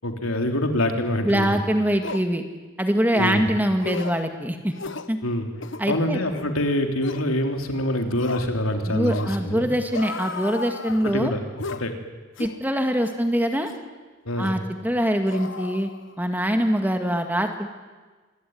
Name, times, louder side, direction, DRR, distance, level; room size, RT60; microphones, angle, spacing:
voice 1, 0.0-1.6 3.2-3.5 5.2-5.5 5.9-9.7 11.0-11.4 11.8-11.9 14.3-14.5, left 1 dB, 85° left, 4 dB, 3.4 m, -25 dB
voice 2, 1.2-2.4 2.8-4.7 5.1-5.2 5.8-6.2 8.9-11.3 12.4-13.7 14.4-15.9 16.2-17.7, equal, 10° right, 5 dB, 1.9 m, -23 dB
sound 1, 1.3-1.4 2.0-2.3 3.1-3.3 3.8-4.2 4.8-5.1 5.6-5.9 6.3-6.5 7.0-7.3 8.2-8.5 9.0-9.4 9.9-11.2 11.6-11.9 12.4-12.6 13.1-13.2 13.7-13.9 14.4-14.6 15.3-16.3 16.6-16.8, left 4 dB, 65° left, 1.1 m, -35 dB
26.5 x 22.0 x 9.5 m, 1.3 s
head